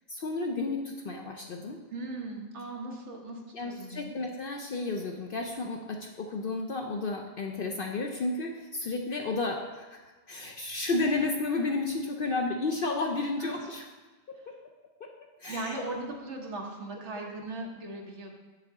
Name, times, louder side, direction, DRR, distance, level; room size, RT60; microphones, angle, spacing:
voice 1, 0.1-1.8 3.5-10.0 10.3-13.8 15.0-15.1 15.4-15.8, left 3 dB, 55° left, 2 dB, 0.7 m, -32 dB
voice 2, 1.9-4.2 13.4-13.7 15.5-18.4, right 2 dB, 60° right, 1 dB, 1.3 m, -38 dB
7.6 x 6.7 x 3.6 m, 1.3 s
omnidirectional pair, 1.3 m